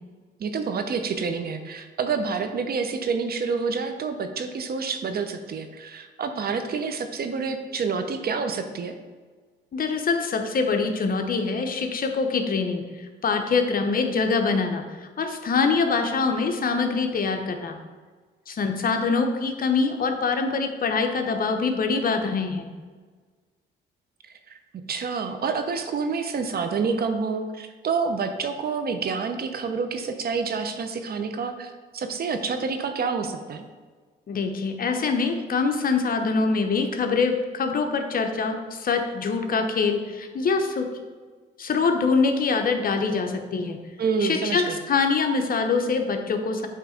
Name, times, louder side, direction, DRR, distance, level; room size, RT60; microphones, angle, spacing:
voice 1, 0.4-9.0 24.2-24.6 24.9-33.7 44.0-44.8, right 5 dB, 50° right, 7 dB, 0.7 m, -28 dB
voice 2, 9.7-12.8 13.2-14.8 15.2-17.8 18.5-22.7 34.3-40.9 41.6-43.8 44.2-46.7, left 4 dB, 45° left, 5 dB, 0.8 m, -24 dB
8.0 x 3.2 x 5.0 m, 1.4 s
cardioid pair, 90°, 20 cm